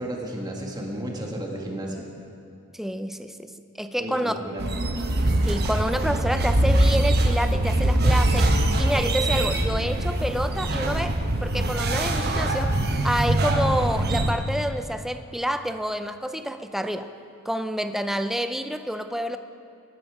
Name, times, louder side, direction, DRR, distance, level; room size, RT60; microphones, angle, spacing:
voice 1, 0.0-2.1 4.0-4.7, right 1 dB, 20° right, -1 dB, 1.8 m, -33 dB
voice 2, 2.7-4.3 5.5-12.8 13.0-17.1 17.5-19.4, equal, ahead, 9 dB, 0.5 m, -28 dB
sound 1, 4.6-14.3, right 1 dB, 45° right, 1.1 m, -23 dB
18.0 x 11.5 x 4.9 m, 2.5 s
head